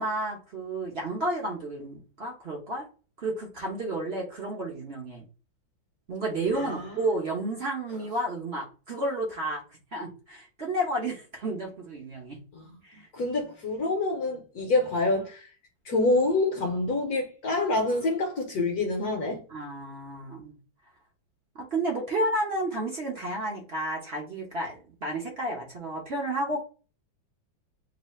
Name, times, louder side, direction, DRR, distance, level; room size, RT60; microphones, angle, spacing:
voice 1, 0.0-2.9 3.2-5.2 6.1-9.6 9.9-12.4 12.8-13.1 19.5-20.6 21.5-24.7 25.0-26.6, right 1 dB, 45° right, 0.9 m, -31 dB
voice 2, 6.5-7.0 12.5-12.8 13.1-15.5 15.8-19.4, left 2 dB, 60° left, 1.2 m, -27 dB
3.2 x 2.7 x 4.2 m
omnidirectional pair, 2.1 m